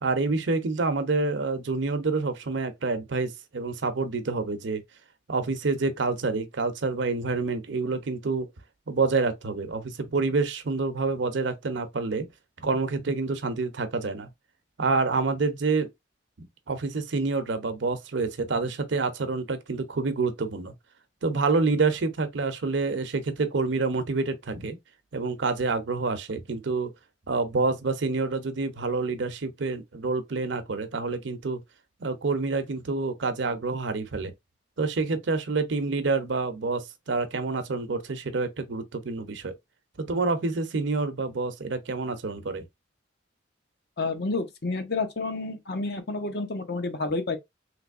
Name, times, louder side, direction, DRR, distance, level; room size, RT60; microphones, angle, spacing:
voice 1, 0.0-4.8 5.3-8.5 8.9-12.3 12.6-14.3 14.8-15.9 16.4-20.7 21.2-24.8 25.1-26.9 27.3-31.6 32.0-34.3 34.8-39.5 40.0-42.6, right 3 dB, 65° right, 0.6 m, -27 dB
voice 2, 44.0-47.4, left 3 dB, 55° left, 0.7 m, -30 dB
3.2 x 3.0 x 2.4 m
head